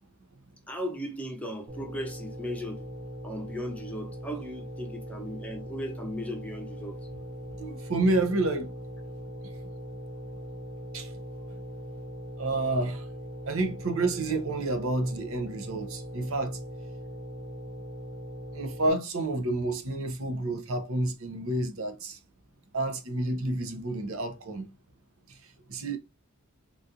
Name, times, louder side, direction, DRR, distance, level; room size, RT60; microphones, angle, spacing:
voice 1, 0.7-2.8 3.2-7.0, equal, 5° left, 0.6 m, -37 dB
sound 1, 1.7-18.9, equal, 30° right, 0.7 m, -40 dB
voice 2, 7.6-8.7 10.9-11.1 12.4-13.1 13.5-16.6 18.5-22.2 22.7-24.7 25.3-26.0, right 2 dB, 65° right, 0.7 m, -29 dB
3.9 x 2.4 x 2.7 m
head